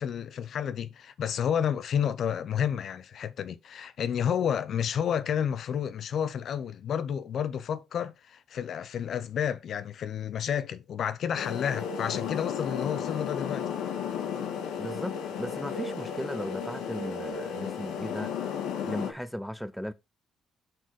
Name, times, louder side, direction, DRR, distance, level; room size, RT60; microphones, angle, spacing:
voice 1, 0.0-13.8, left 8 dB, 65° left, 0.6 m, -30 dB
sound 1, 11.3-19.1, left 7 dB, 90° left, 1.7 m, -34 dB
voice 2, 14.8-19.9, equal, ahead, 0.8 m, -37 dB
7.9 x 4.2 x 4.8 m
cardioid pair, 90°, 0 cm